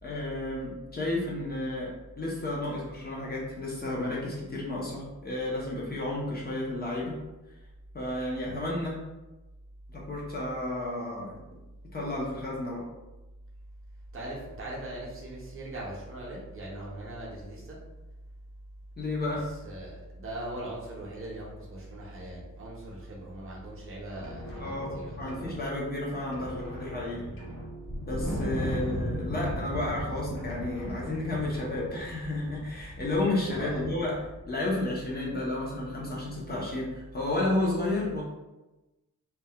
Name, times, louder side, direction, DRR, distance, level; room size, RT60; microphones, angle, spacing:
voice 1, 0.0-7.2 7.9-9.0 9.9-11.3 11.9-12.8 19.0-19.5 24.6-27.3 28.0-34.2 34.5-38.2, left 2 dB, 30° left, -4 dB, 0.4 m, -32 dB
voice 2, 14.1-17.8 19.4-25.2 27.2-27.5 28.5-28.9 33.5-33.9, right 1 dB, 40° right, -4 dB, 0.6 m, -40 dB
sound 1, 24.1-25.9 26.2-28.0 28.3-30.1 30.4-32.1, equal, 80° left, 0.8 m, -43 dB
Wind, 27.9-34.4, equal, 50° left, 0.9 m, -36 dB
2.2 x 2.1 x 2.7 m, 1.1 s
wide cardioid pair, 175°, 32 cm